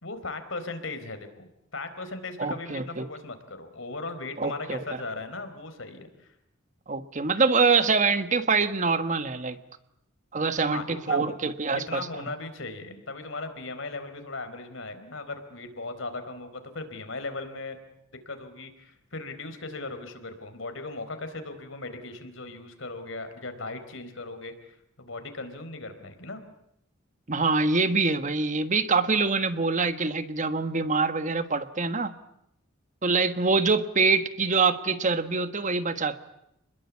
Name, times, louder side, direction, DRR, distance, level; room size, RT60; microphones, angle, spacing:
voice 1, 0.0-6.1 10.7-11.4 11.9-17.8 18.3-26.4, left 3 dB, 75° left, 8 dB, 4.3 m, -38 dB
voice 2, 2.4-3.1 4.4-4.8 6.9-9.6 10.3-12.1 27.3-32.1 33.0-36.2, right 4 dB, 40° right, 10 dB, 1.4 m, -25 dB
29.5 x 21.0 x 8.5 m, 0.80 s
head